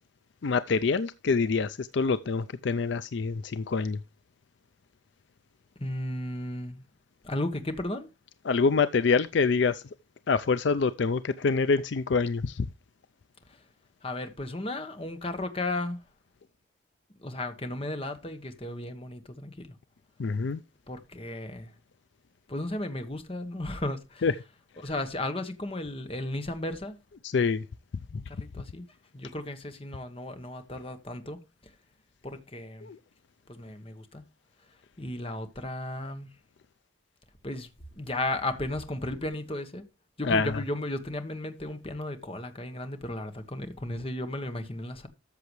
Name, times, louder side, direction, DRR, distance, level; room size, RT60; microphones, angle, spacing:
voice 1, 0.4-4.0 8.4-9.8 10.3-12.7 20.2-20.6 24.2-24.3 27.2-27.7 32.8-33.0 40.2-40.6, left 4 dB, 65° left, 0.4 m, -26 dB
voice 2, 5.8-6.8 7.2-8.1 13.5-13.6 14.0-16.0 17.2-19.7 20.9-21.7 22.5-24.2 24.8-27.0 28.1-28.9 29.1-31.4 32.2-32.9 33.5-34.2 35.0-36.3 37.4-37.7 38.0-39.8 40.2-45.1, left 1 dB, 30° left, 1.3 m, -34 dB
13.5 x 6.9 x 3.1 m
head